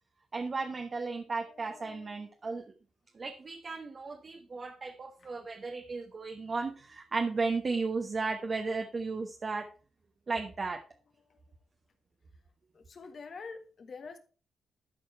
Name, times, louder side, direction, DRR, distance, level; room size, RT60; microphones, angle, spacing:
voice 1, 0.3-2.6 3.1-9.7 10.3-10.8, right 4 dB, 45° right, 4 dB, 1.1 m, -34 dB
voice 2, 1.5-2.3 5.2-5.3 11.3-11.4 12.7-14.2, left 4 dB, 55° left, 7 dB, 1.7 m, -47 dB
12.5 x 4.6 x 4.5 m, 0.37 s
supercardioid pair, 60°, 0 cm